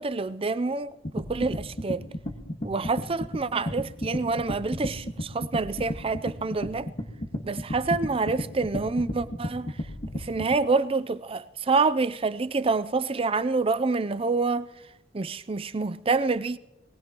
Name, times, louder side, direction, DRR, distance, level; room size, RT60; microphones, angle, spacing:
voice 1, 0.0-2.0 2.6-6.9 7.4-9.8 10.1-14.7 15.1-16.6, right 4 dB, 30° right, 0.5 m, -27 dB
sound 1, 1.0-10.5, equal, 40° left, 1.6 m, -33 dB
21.5 x 19.0 x 3.0 m
head